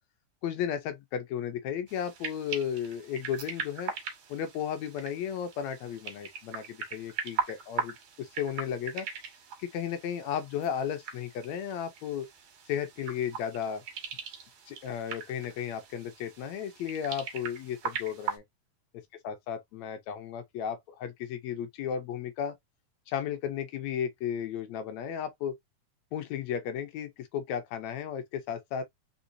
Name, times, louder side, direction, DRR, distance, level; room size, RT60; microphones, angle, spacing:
voice 1, 0.4-3.9 4.3-9.1 9.6-12.3 12.7-13.8 14.7-18.4 19.2-22.6 23.1-25.5 26.1-28.8, left 8 dB, 75° left, 1.9 m, -34 dB
sound 1, 1.9-18.4, right 7 dB, 60° right, 2.6 m, -40 dB
4.5 x 4.1 x 2.6 m
omnidirectional pair, 3.5 m